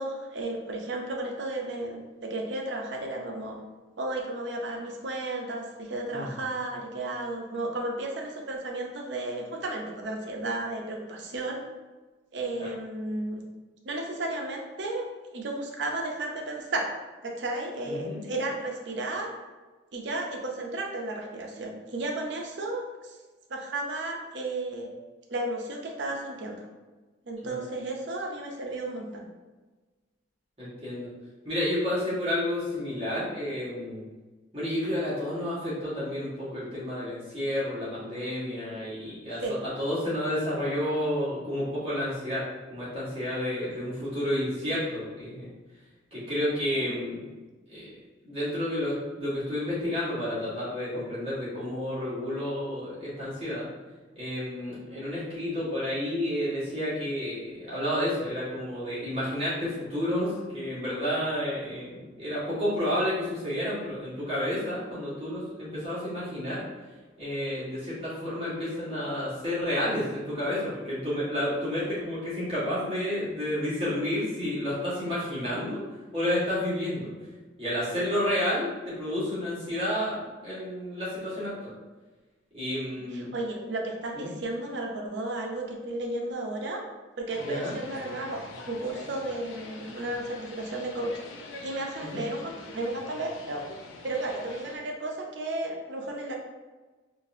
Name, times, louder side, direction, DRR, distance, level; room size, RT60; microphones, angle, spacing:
voice 1, 0.0-3.6 4.0-11.6 12.3-13.4 13.8-15.1 15.3-16.9 17.2-19.4 19.9-23.2 23.5-24.9 25.3-26.7 27.3-29.2 38.6-38.7 39.4-39.6 46.7-46.9 54.8-55.1 73.8-74.0 83.1-86.8 87.2-88.4 88.7-91.2 91.6-93.6 94.0-96.4, right 2 dB, 60° right, 1 dB, 0.6 m, -33 dB
voice 2, 17.9-18.2 27.4-27.6 30.6-31.1 31.4-34.0 34.5-45.5 46.1-47.2 47.7-47.9 48.2-53.7 54.1-66.6 67.2-75.8 76.1-77.1 77.6-81.7 82.5-83.3 84.1-84.3 87.4-87.7 92.0-92.2, left 1 dB, 30° right, -10 dB, 1.4 m, -30 dB
sound 1, 87.3-94.8, left 3 dB, 90° left, 0.4 m, -45 dB
3.8 x 2.5 x 2.6 m, 1.3 s
head